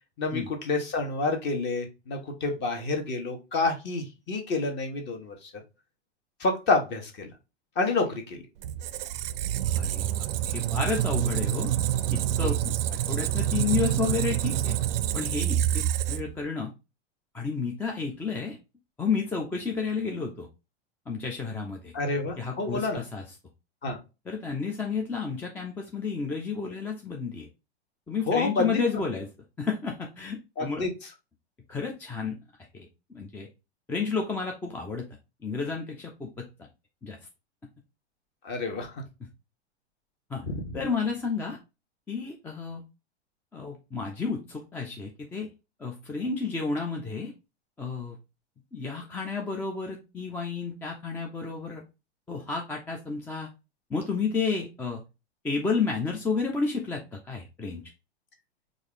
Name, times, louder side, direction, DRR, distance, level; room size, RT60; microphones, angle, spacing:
voice 1, 0.2-5.5 6.4-7.3 7.8-8.4 12.4-12.5 21.9-23.0 23.8-24.0 28.3-28.8 30.6-30.9 38.4-38.9 40.5-40.8, left 3 dB, 30° left, 4 dB, 1.3 m, -28 dB
Squeak, 8.6-16.5, right 12 dB, 55° right, 0.5 m, -27 dB
voice 2, 9.7-10.1 10.5-11.7 12.1-12.7 13.1-14.8 15.1-16.7 17.3-18.6 19.0-20.5 21.1-21.9 22.4-23.2 24.3-27.5 28.1-29.3 29.6-30.9 31.7-32.4 32.7-33.5 33.9-35.1 35.4-36.5 37.0-37.2 40.3-40.4 40.7-41.6 42.1-42.8 43.5-45.5 45.8-47.3 47.8-48.2 48.7-51.8 52.3-53.5 53.9-55.0 55.4-57.8, left 5 dB, 5° left, 1 dB, 0.3 m, -31 dB
4.6 x 2.6 x 3.7 m, 0.27 s
figure-of-eight pair, 95°, 34 cm